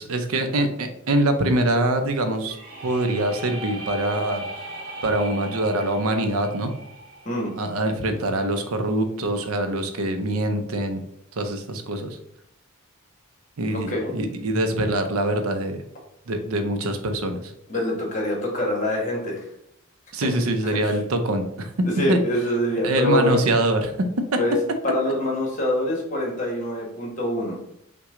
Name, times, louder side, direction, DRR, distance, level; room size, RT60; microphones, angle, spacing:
voice 1, 0.0-2.6 2.8-4.4 5.0-6.7 7.6-11.0 11.3-12.2 13.6-15.8 16.3-17.5 20.1-21.7 22.1-22.2 22.8-23.9, right 1 dB, 90° right, 7 dB, 0.6 m, -24 dB
sound 1, 2.4-8.3, right 1 dB, 40° right, 1.0 m, -37 dB
voice 2, 13.7-14.1 17.7-19.4 20.6-21.0 22.0-23.4 24.4-24.5 24.8-27.5, left 1 dB, 35° left, -1 dB, 1.3 m, -25 dB
5.8 x 2.2 x 3.7 m, 0.75 s
head